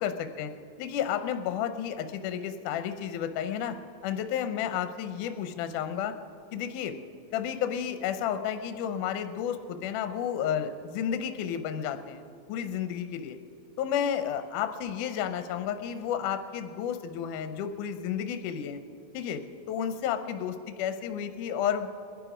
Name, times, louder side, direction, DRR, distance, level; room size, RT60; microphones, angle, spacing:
voice 1, 0.0-0.5 0.8-3.8 4.0-6.1 6.5-7.0 7.3-13.4 13.8-18.8 19.1-19.4 19.7-21.9, left 9 dB, 75° left, 9 dB, 1.9 m, -31 dB
22.0 x 11.0 x 5.0 m, 2.6 s
omnidirectional pair, 4.2 m